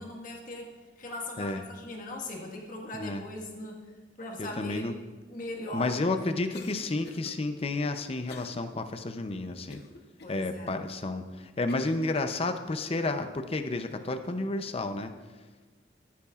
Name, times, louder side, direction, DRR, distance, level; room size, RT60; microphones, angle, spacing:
voice 1, 0.0-3.8 4.2-4.8 5.3-6.2 10.2-10.8, left 1 dB, 50° left, 0 dB, 1.6 m, -40 dB
voice 2, 4.4-4.9 5.7-9.8 10.3-15.1, left 2 dB, 35° left, 8 dB, 0.6 m, -31 dB
Cough, 6.5-7.3 8.3-8.6 9.1-9.2 9.7-10.3 11.0-11.1 11.7-12.0, left 3 dB, 65° left, 0.9 m, -47 dB
14.5 x 8.5 x 2.4 m, 1.3 s
head